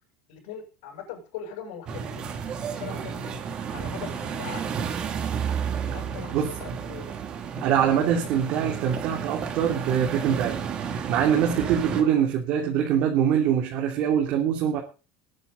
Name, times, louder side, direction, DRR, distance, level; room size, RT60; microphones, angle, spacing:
voice 1, 0.3-2.3 2.7-3.3 3.7-4.6 5.9-7.2 11.9-12.3, left 8 dB, 80° left, -1 dB, 7.8 m, -40 dB
sound 1, 1.9-12.0, right 7 dB, 35° right, 2.7 m, -32 dB
voice 2, 7.6-14.8, right 9 dB, 50° right, 2 dB, 2.9 m, -24 dB
20.5 x 9.8 x 4.1 m, 0.34 s
cardioid pair, 160°, 3 cm